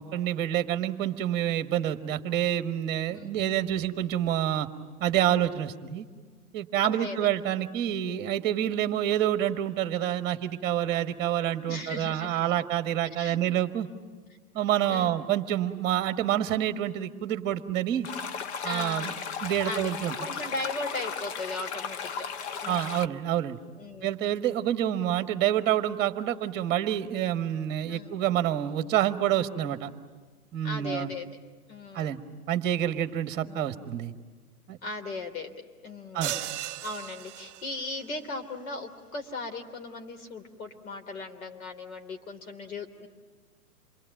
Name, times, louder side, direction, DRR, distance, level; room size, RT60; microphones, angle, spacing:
voice 1, 0.0-4.7 5.0-6.1 6.5-13.9 14.5-18.1 18.6-19.1 19.4-20.1 22.7-23.6 24.0-29.9 30.5-31.1 31.9-32.2 32.5-34.1 34.7-34.8 36.1-36.3, right 11 dB, 20° right, 9 dB, 1.5 m, -27 dB
voice 2, 6.8-7.3 11.7-12.5 13.0-13.4 14.9-15.2 18.6-19.2 19.6-19.9 20.2-22.3 22.6-23.0 23.8-24.1 27.9-28.2 30.6-31.3 31.7-32.2 33.4-33.8 34.8-35.5 35.8-43.1, left 2 dB, 65° left, 4 dB, 3.4 m, -38 dB
sound 1, 18.0-23.1, left 6 dB, 45° left, 1.1 m, -36 dB
sound 2, 36.2-38.0, right 11 dB, 50° right, 0.9 m, -36 dB
27.5 x 22.5 x 9.2 m, 1.5 s
hypercardioid pair, 130°, 45 cm